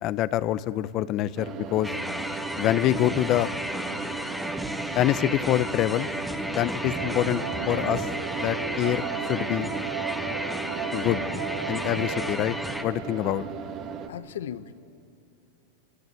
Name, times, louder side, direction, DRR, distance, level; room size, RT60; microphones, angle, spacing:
voice 1, 0.0-1.9 2.6-3.5 4.9-6.1 6.5-8.1 8.4-9.0 9.3-9.7 10.9-11.3 11.7-12.6 12.8-13.5, left 13 dB, 45° left, 16 dB, 0.8 m, -25 dB
sound 1, 1.4-14.1, right 6 dB, 40° right, 2.0 m, -37 dB
sound 2, 1.8-12.8, equal, ahead, 1.5 m, -33 dB
sound 3, 6.9-12.5, right 9 dB, 80° right, 2.0 m, -35 dB
voice 2, 14.1-14.7, left 10 dB, 80° left, 14 dB, 1.0 m, -37 dB
25.5 x 23.0 x 9.3 m, 2.7 s
hypercardioid pair, 115°, 0 cm